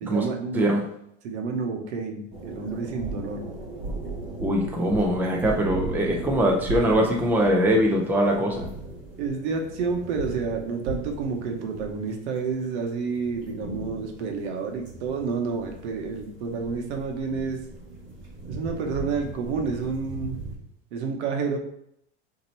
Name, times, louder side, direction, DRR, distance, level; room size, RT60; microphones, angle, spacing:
voice 1, 0.0-0.7 1.2-3.5 9.2-17.6 18.5-20.4 20.9-21.6, right 5 dB, 75° right, 3 dB, 1.0 m, -29 dB
sound 1, 2.3-20.5, right 2 dB, 35° right, 1.5 m, -37 dB
voice 2, 4.4-8.7, equal, 5° right, 0 dB, 0.5 m, -22 dB
3.9 x 2.9 x 4.3 m, 0.73 s
supercardioid pair, 120°, 34 cm